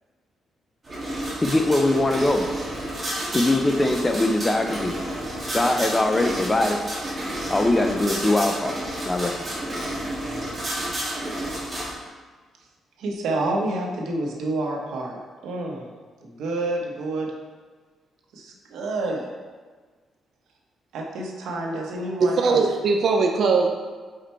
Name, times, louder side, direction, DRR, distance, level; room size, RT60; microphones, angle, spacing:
sound 1, 0.8-11.9, right 1 dB, 20° right, 1.6 m, -31 dB
voice 1, 1.4-2.5 3.3-5.0 5.5-6.8 7.5-8.8 9.1-9.6, left 2 dB, 15° left, 4 dB, 0.4 m, -22 dB
voice 2, 13.0-15.9 16.2-17.3 18.3-19.3 20.9-22.6, right 2 dB, 90° right, 0 dB, 1.0 m, -29 dB
voice 3, 22.2-23.7, right 4 dB, 50° right, 2 dB, 0.4 m, -20 dB
5.0 x 4.3 x 4.4 m, 1.5 s
cardioid pair, 170°, 0 cm